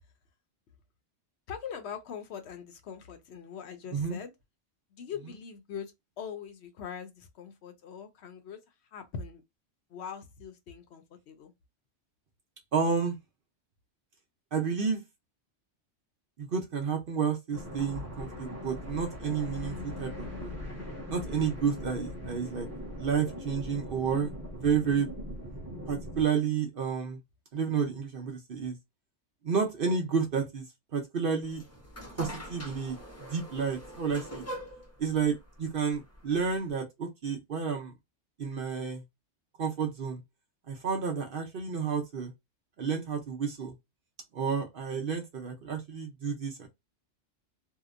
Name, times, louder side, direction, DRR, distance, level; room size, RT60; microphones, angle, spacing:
voice 1, 1.5-4.3 4.9-8.6 8.9-9.4 9.9-11.5, left 7 dB, 70° left, 0.8 m, -42 dB
voice 2, 12.7-13.2 14.5-15.0 16.4-20.5 21.1-22.7 23.0-24.3 24.6-25.1 25.9-27.2 27.5-28.8 29.4-30.6 30.9-31.6 32.2-33.0 33.3-34.4 35.0-37.9 38.4-39.0 39.6-40.2 40.7-42.3 42.8-43.7 44.3-46.7, right 6 dB, 55° right, 0.7 m, -30 dB
sound 1, 17.5-26.3, left 1 dB, 15° right, 0.8 m, -40 dB
sound 2, 31.4-36.7, equal, 15° left, 0.5 m, -44 dB
2.8 x 2.1 x 2.4 m
omnidirectional pair, 1.3 m